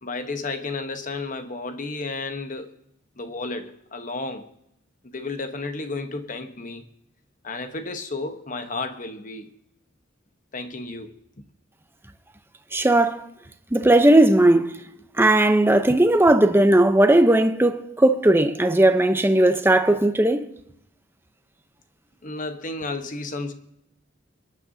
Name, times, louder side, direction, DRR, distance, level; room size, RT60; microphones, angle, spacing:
voice 1, 0.0-2.7 3.2-4.5 5.0-6.8 7.4-9.5 10.5-11.1 22.2-23.5, left 3 dB, 40° left, 1.1 m, -32 dB
voice 2, 12.7-13.3 13.7-14.8 15.1-20.5, right 1 dB, 10° right, 0.7 m, -17 dB
24.5 x 11.0 x 2.8 m
head